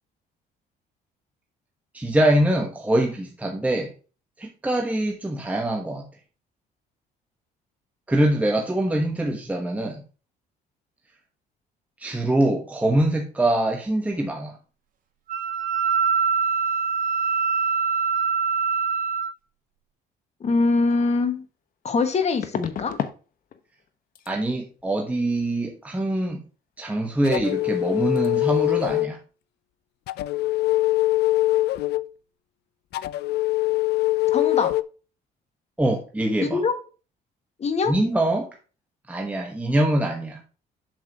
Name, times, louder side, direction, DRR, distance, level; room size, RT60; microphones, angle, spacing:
voice 1, 1.9-3.9 4.4-6.1 8.1-10.0 12.0-14.6 24.3-26.4 26.8-29.2 35.8-36.6 37.9-38.5 39.1-40.4, right 1 dB, 10° right, 1.2 m, -24 dB
Wind instrument woodwind instrument, 15.3-19.3, right 6 dB, 55° right, 1.8 m, -23 dB
voice 2, 20.4-21.4 21.8-22.9 34.3-34.7 36.4-36.7 37.6-37.9, left 4 dB, 40° left, 1.6 m, -23 dB
sound 1, 20.9-21.0 22.4-23.2 23.5-23.9 24.1-24.3 27.3-27.4 27.6-27.9 28.1-28.3, left 9 dB, 55° left, 1.0 m, -32 dB
sound 2, 27.2-29.1 30.1-32.1 32.9-34.8, left 17 dB, 75° left, 0.5 m, -23 dB
7.6 x 7.2 x 2.8 m
cardioid pair, 110°, 17 cm